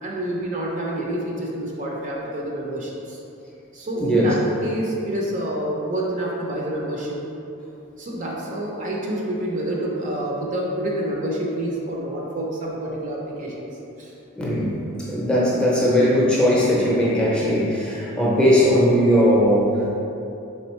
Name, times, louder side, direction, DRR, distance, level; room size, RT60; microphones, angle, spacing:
voice 1, 0.0-3.2 3.7-7.2 8.0-13.7 14.0-14.1, right 1 dB, 35° right, -3 dB, 0.5 m, -28 dB
voice 2, 4.0-4.3 14.4-14.7 15.1-19.9, equal, 5° left, -6 dB, 0.6 m, -19 dB
4.3 x 3.8 x 3.1 m, 2.8 s
head